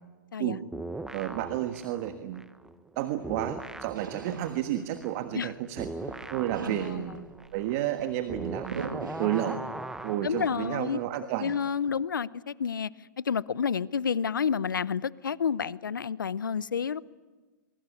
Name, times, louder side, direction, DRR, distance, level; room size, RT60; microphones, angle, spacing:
sound 1, 0.7-3.0 3.2-10.8, right 2 dB, 5° right, 1.0 m, -40 dB
voice 1, 1.1-2.4 3.0-5.9 6.3-7.2 7.5-8.9 9.2-9.6 10.0-11.5, right 12 dB, 45° right, 9 dB, 1.5 m, -31 dB
sound 2, 3.1-5.4 5.7-9.8 10.2-11.2, right 6 dB, 80° right, 2.1 m, -42 dB
voice 2, 6.6-7.2 10.2-11.0 11.4-12.9 13.2-17.0, left 7 dB, 85° left, 20 dB, 0.7 m, -30 dB
23.5 x 23.5 x 8.4 m, 1.3 s
hypercardioid pair, 120°, 10 cm